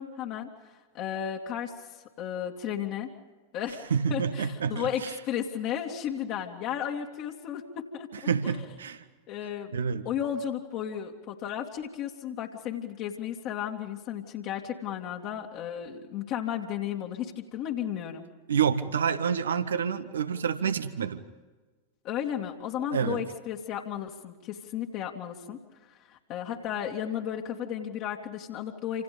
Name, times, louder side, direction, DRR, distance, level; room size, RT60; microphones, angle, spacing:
voice 1, 0.0-3.1 3.5-8.1 8.4-8.6 9.3-9.7 10.0-18.2 22.0-29.0, left 9 dB, 40° left, 0 dB, 2.6 m, -34 dB
voice 2, 3.9-5.1 8.3-9.0 9.7-10.1 18.5-21.2 22.9-23.2, right 7 dB, 65° right, 10 dB, 1.7 m, -28 dB
28.5 x 27.5 x 5.4 m, 1.3 s
figure-of-eight pair, 90°, 0 cm